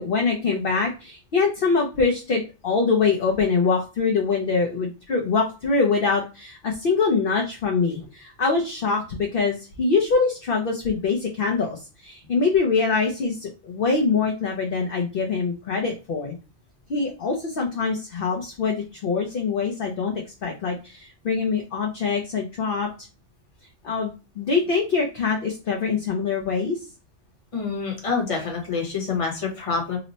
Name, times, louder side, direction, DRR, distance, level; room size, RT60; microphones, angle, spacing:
voice 1, 0.0-16.3 16.9-22.9 23.8-26.8, left 4 dB, 55° left, 0 dB, 0.7 m, -24 dB
voice 2, 27.5-30.0, left 5 dB, 30° left, 0 dB, 0.9 m, -27 dB
3.0 x 2.1 x 3.9 m, 0.32 s
omnidirectional pair, 1.2 m